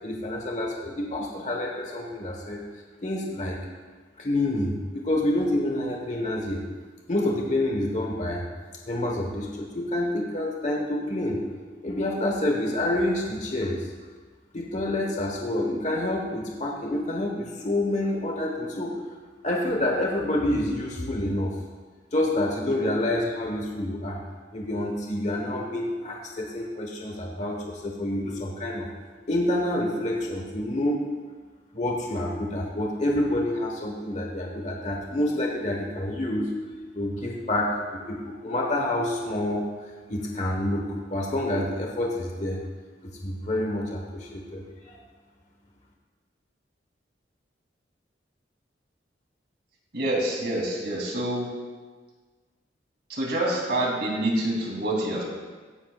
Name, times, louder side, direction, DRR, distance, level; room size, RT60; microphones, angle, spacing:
voice 1, 0.0-2.6 3.0-3.6 4.2-6.6 7.1-8.4 8.9-11.4 11.8-13.9 14.5-19.0 19.4-21.5 22.1-24.2 24.5-28.9 29.3-31.0 31.7-36.5 36.9-42.6 43.2-45.0, left 1 dB, 40° left, 0 dB, 1.3 m, -28 dB
voice 2, 49.9-51.5 53.1-55.2, right 1 dB, 60° right, -2 dB, 3.0 m, -27 dB
16.0 x 11.0 x 2.4 m, 1.4 s
head